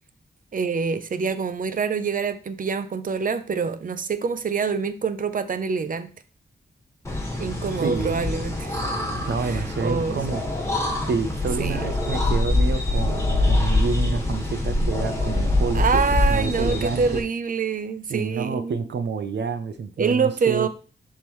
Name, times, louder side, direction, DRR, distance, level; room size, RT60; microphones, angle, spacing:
voice 1, 0.5-6.1 7.4-8.8 9.4-10.2 11.6-11.8 15.7-18.8 20.0-20.7, right 5 dB, 50° right, 11 dB, 0.6 m, -26 dB
sound 1, 7.0-17.2, left 2 dB, 15° left, 1.6 m, -24 dB
voice 2, 7.8-8.3 9.2-10.4 11.1-16.0 16.3-17.2 18.1-20.7, right 5 dB, 85° right, 10 dB, 0.8 m, -28 dB
11.0 x 3.7 x 3.2 m, 0.36 s
wide cardioid pair, 140°, 18 cm